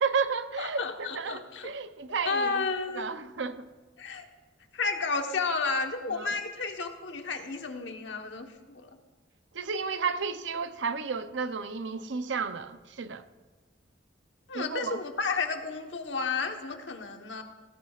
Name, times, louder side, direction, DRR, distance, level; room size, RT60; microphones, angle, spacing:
voice 1, 0.0-2.6 2.9-3.7 6.1-6.3 9.5-13.2 14.5-15.0, right 5 dB, 75° right, 0.6 m, -32 dB
voice 2, 0.6-1.7 2.2-3.1 4.0-4.3 4.7-8.9 14.5-17.4, left 4 dB, 80° left, 1.2 m, -32 dB
17.5 x 13.0 x 2.4 m
head